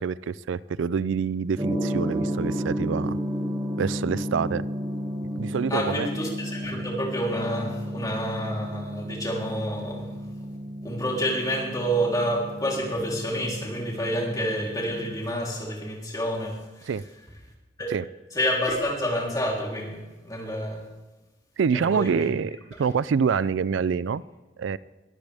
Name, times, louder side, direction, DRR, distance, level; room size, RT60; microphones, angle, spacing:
voice 1, 0.0-3.2 3.8-4.6 5.4-6.1 16.9-17.0 17.9-18.0 21.6-24.2 24.6-24.8, right 6 dB, 90° right, 19 dB, 0.4 m, -26 dB
Gong, 1.6-15.3, equal, 20° right, 2.3 m, -32 dB
voice 2, 5.7-10.2 10.8-16.9 17.8-17.9 18.3-20.8 21.7-22.3, equal, 20° left, -2 dB, 3.5 m, -28 dB
21.0 x 13.5 x 3.5 m, 1.2 s
head